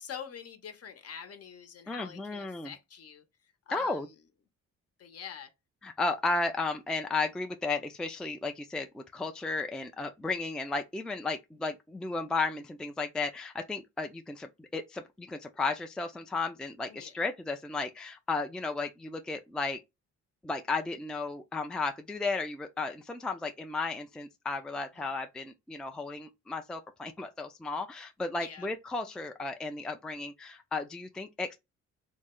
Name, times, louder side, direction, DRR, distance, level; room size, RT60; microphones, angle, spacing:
voice 1, 0.0-3.2 3.7-4.1 5.0-5.5 16.9-17.1 25.0-25.1 28.4-28.7, left 7 dB, 55° left, 0.9 m, -45 dB
voice 2, 1.9-2.7 3.7-4.1 5.8-19.8 20.4-31.6, left 3 dB, 5° left, 0.4 m, -34 dB
3.1 x 2.1 x 3.7 m
cardioid pair, 90°, 30 cm